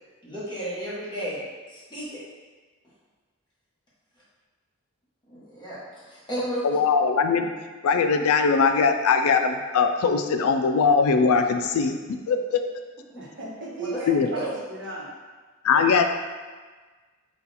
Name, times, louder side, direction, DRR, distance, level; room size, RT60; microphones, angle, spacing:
voice 1, 0.2-1.4 1.7-2.2 5.3-6.6 13.1-13.2 13.8-14.4, equal, 20° left, -9 dB, 1.3 m, -33 dB
voice 2, 6.6-7.5 7.8-12.6 14.1-14.3 15.6-16.0, left 5 dB, 85° left, 6 dB, 0.3 m, -21 dB
voice 3, 13.2-15.1 15.7-15.9, right 2 dB, 55° right, -4 dB, 0.9 m, -35 dB
4.0 x 2.4 x 4.1 m, 1.4 s
head